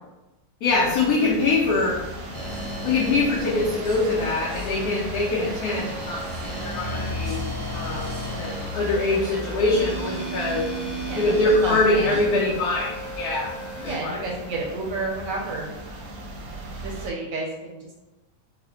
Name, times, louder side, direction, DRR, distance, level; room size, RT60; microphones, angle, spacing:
voice 1, 0.6-2.0 2.8-7.4 7.7-10.7 11.2-13.5 13.8-14.3, left 2 dB, 75° left, -4 dB, 1.1 m, -23 dB
sound 1, 0.6-17.1, equal, 85° right, 1.2 m, -36 dB
sound 2, 2.3-14.0, equal, 55° left, 0.4 m, -35 dB
voice 2, 11.6-12.3 13.8-16.1 16.8-17.9, right 3 dB, 70° right, -1 dB, 0.9 m, -31 dB
3.9 x 2.0 x 2.8 m, 1.0 s
omnidirectional pair, 1.7 m